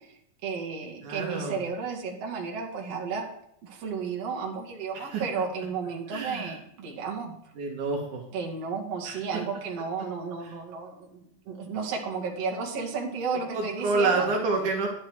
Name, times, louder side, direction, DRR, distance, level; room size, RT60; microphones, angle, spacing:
voice 1, 0.0-3.2 3.6-7.4 8.3-14.3, right 5 dB, 50° right, -1 dB, 2.9 m, -33 dB
voice 2, 1.0-1.6 5.1-5.2 6.1-6.5 7.6-8.2 9.0-9.2 13.5-14.9, right 3 dB, 65° right, 1 dB, 3.1 m, -28 dB
11.0 x 10.0 x 4.7 m, 0.74 s
omnidirectional pair, 3.9 m